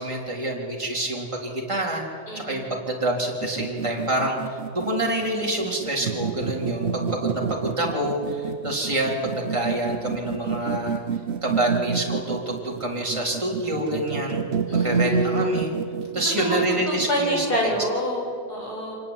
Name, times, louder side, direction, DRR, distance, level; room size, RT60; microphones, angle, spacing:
voice 1, 0.0-2.0 2.3-11.0 11.4-14.4 14.7-15.7 16.1-17.7, right 1 dB, 15° right, -2 dB, 3.9 m, -27 dB
voice 2, 2.3-2.7 14.7-15.5 16.4-16.6 16.9-19.0, equal, 70° left, -1 dB, 7.1 m, -27 dB
sound 1, 3.4-17.2, right 6 dB, 50° right, 0.9 m, -29 dB
26.5 x 18.5 x 9.2 m, 2.4 s
omnidirectional pair, 1.8 m